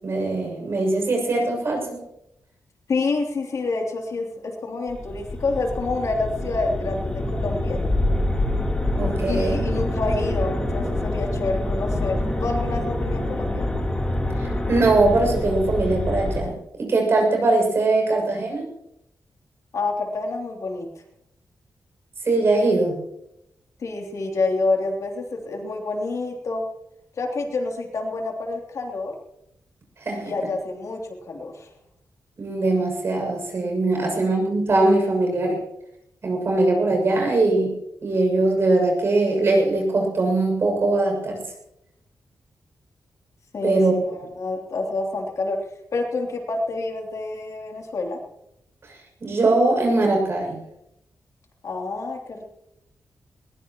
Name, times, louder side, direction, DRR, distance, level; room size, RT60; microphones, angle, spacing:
voice 1, 0.0-2.0 8.9-9.6 14.3-18.7 22.2-23.0 30.0-30.3 32.4-35.6 36.2-37.7 38.0-41.4 43.6-43.9 48.8-50.6, right 2 dB, 40° right, 1 dB, 6.8 m, -21 dB
voice 2, 2.9-7.8 9.3-13.7 19.7-20.9 23.8-26.6 27.2-29.1 30.2-31.0 31.3-31.7 34.0-34.2 43.5-45.6 45.9-48.2 51.6-52.4, left 3 dB, 55° left, 2 dB, 3.1 m, -28 dB
sound 1, 4.9-16.4, left 1 dB, 15° left, 3.3 m, -26 dB
21.0 x 20.5 x 3.0 m, 0.81 s
wide cardioid pair, 180°, 6 cm